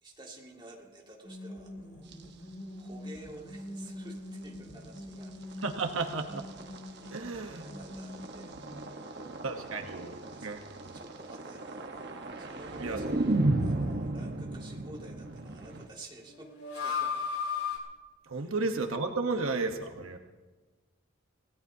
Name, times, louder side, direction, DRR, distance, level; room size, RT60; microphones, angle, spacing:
voice 1, 0.0-2.1 2.8-5.7 7.0-9.5 9.9-11.9 12.4-17.2 18.3-18.5 19.2-19.3 20.0-20.2, right 2 dB, 20° right, -1 dB, 2.2 m, -52 dB
sound 1, 1.2-9.1 9.3-9.4 16.2-17.8, left 5 dB, 75° left, 3.5 m, -39 dB
sound 2, 2.1-2.2 3.3-3.4 3.9-4.0 5.0-15.9, right 2 dB, 50° right, 1.2 m, -35 dB
voice 2, 5.6-6.4 7.1-7.6 9.4-10.1 10.4-10.9 12.8-13.0 18.3-20.2, right 3 dB, 75° right, 5 dB, 1.1 m, -33 dB
27.0 x 17.0 x 2.8 m, 1.3 s
head